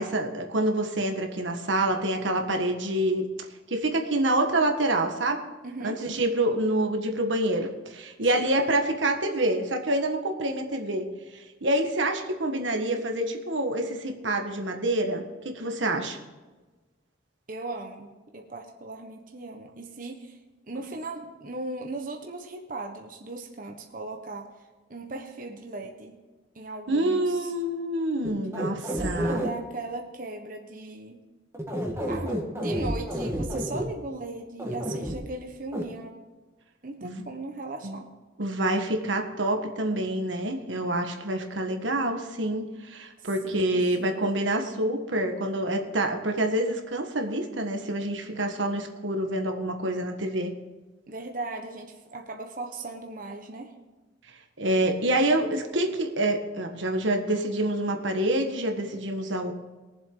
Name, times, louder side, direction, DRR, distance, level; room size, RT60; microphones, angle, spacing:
voice 1, 0.0-3.3 3.7-5.4 5.8-11.1 11.3-16.2 26.9-29.4 37.0-37.2 37.8-38.0 38.4-50.5 54.6-59.5, right 1 dB, 80° right, 4 dB, 1.5 m, -27 dB
voice 2, 5.6-6.0 8.2-8.4 17.5-20.4 20.7-24.5 24.9-26.2 26.5-27.5 28.8-31.2 32.1-36.2 36.8-38.1 43.2-44.3 51.1-53.7, right 2 dB, 45° right, 2 dB, 1.2 m, -38 dB
sound 1, 28.2-29.5 31.5-33.9 34.6-35.2 35.7-35.8, equal, 15° right, 1.6 m, -29 dB
21.5 x 7.6 x 3.9 m, 1.2 s
head